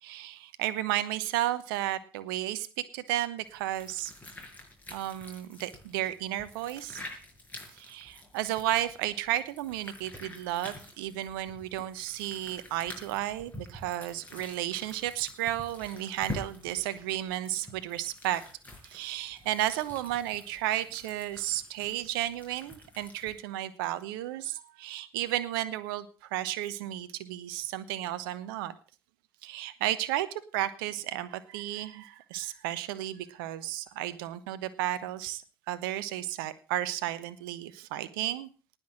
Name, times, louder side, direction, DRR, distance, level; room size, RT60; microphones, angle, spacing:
voice 1, 0.0-2.7 2.9-4.1 4.9-7.0 7.7-18.4 18.8-28.7 29.4-38.5, right 14 dB, 65° right, 14 dB, 1.0 m, -33 dB
sound 1, 3.5-23.4, left 1 dB, 15° left, 6.1 m, -47 dB
19.0 x 6.4 x 7.6 m, 0.37 s
figure-of-eight pair, 55°, 12 cm